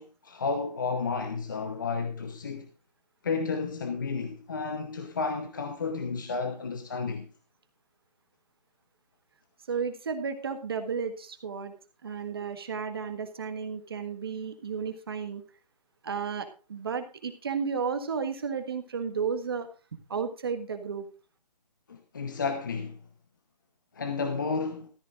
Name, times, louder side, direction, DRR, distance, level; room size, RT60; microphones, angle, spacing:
voice 1, 0.0-2.7 3.2-7.3 21.9-23.0 23.9-24.9, left 4 dB, 30° left, 0.9 m, -32 dB
voice 2, 9.7-11.7 12.0-15.4 16.0-19.7 20.1-21.1, right 6 dB, 35° right, 1.6 m, -33 dB
13.5 x 13.5 x 2.5 m
hypercardioid pair, 175°, 21 cm